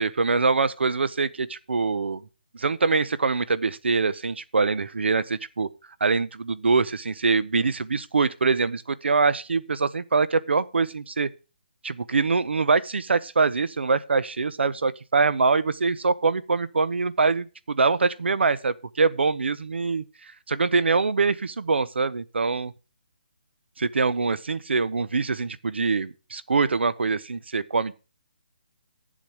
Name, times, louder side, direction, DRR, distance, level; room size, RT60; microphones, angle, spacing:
voice 1, 0.0-2.2 2.5-5.7 6.0-11.3 11.8-22.7 23.8-27.9, right 4 dB, 75° right, 0.7 m, -24 dB
11.0 x 7.5 x 4.9 m
hypercardioid pair, 180°, 6 cm